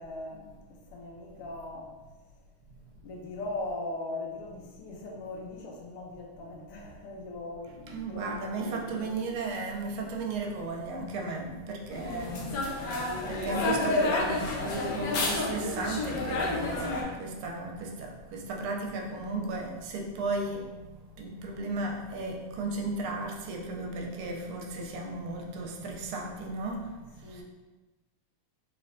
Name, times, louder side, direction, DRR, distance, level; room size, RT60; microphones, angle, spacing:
voice 1, 0.0-1.9 3.0-9.2 27.2-27.4, left 2 dB, 90° left, 0 dB, 1.6 m, -40 dB
voice 2, 7.9-13.0 13.3-20.7 21.2-26.9 27.3-27.4, right 3 dB, 80° right, 1 dB, 1.4 m, -35 dB
sound 1, 11.9-17.0, left 2 dB, 70° left, 1.0 m, -30 dB
3.9 x 3.2 x 2.5 m, 1.2 s
omnidirectional pair, 2.4 m